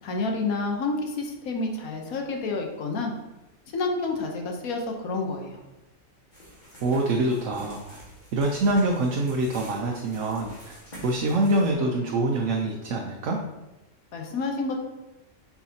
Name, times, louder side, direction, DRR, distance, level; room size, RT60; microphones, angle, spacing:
voice 1, 0.0-3.1 3.7-5.6 14.1-14.8, left 3 dB, 80° left, 2 dB, 1.4 m, -29 dB
sound 1, 6.3-11.7, equal, 35° left, 1.9 m, -47 dB
voice 2, 6.8-8.0 8.3-10.7 11.0-13.4, right 2 dB, 65° right, 0 dB, 1.0 m, -25 dB
7.2 x 4.7 x 2.8 m, 0.98 s
omnidirectional pair, 1.5 m